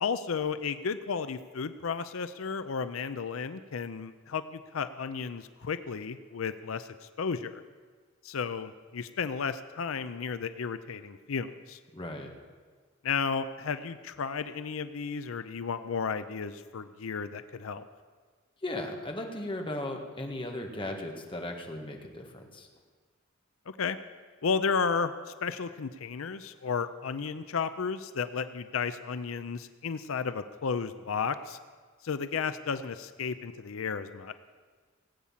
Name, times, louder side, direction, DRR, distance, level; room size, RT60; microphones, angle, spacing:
voice 1, 0.0-7.6 8.2-11.8 13.0-17.8 23.8-24.0 24.4-31.6 32.0-34.3, left 5 dB, 90° left, 12 dB, 0.6 m, -33 dB
voice 2, 11.9-12.3 18.6-22.7, left 1 dB, 25° left, 2 dB, 1.7 m, -37 dB
18.0 x 8.6 x 7.3 m, 1.5 s
head